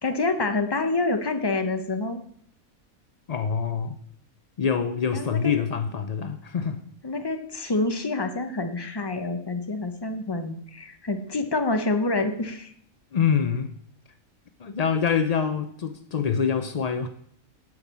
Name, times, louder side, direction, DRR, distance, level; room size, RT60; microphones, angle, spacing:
voice 1, 0.0-2.2 5.1-5.6 7.0-12.7, left 2 dB, 25° left, 7 dB, 0.6 m, -27 dB
voice 2, 3.3-4.0 4.6-6.8 13.1-13.7 14.6-17.1, left 6 dB, 80° left, 8 dB, 0.3 m, -25 dB
8.2 x 5.5 x 7.2 m, 0.64 s
omnidirectional pair, 1.5 m